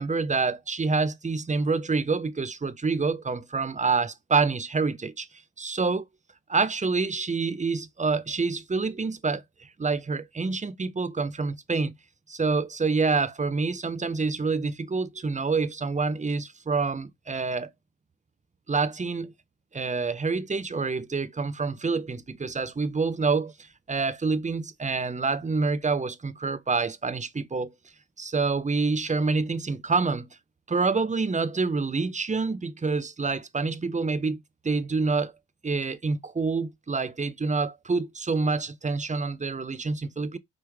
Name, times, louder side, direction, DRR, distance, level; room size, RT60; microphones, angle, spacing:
voice 1, 0.0-5.3 5.6-6.1 6.5-11.9 12.3-17.7 18.7-19.3 19.7-23.5 23.9-27.7 28.2-30.3 30.7-35.3 35.6-40.4, right 4 dB, 15° right, 0.7 m, -27 dB
5.1 x 3.3 x 3.1 m
hypercardioid pair, 50°, 44 cm